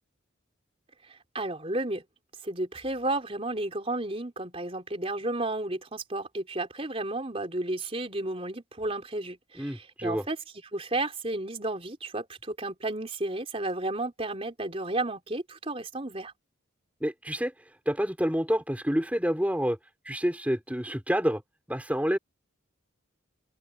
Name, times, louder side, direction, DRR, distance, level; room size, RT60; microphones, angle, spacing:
voice 1, 1.3-2.0 2.4-10.4 10.7-16.3, right 2 dB, 30° right, 3.8 m, -32 dB
voice 2, 9.5-10.3 17.0-17.5 17.9-19.8 20.0-21.4 21.7-22.2, equal, 5° right, 4.1 m, -28 dB
open air
head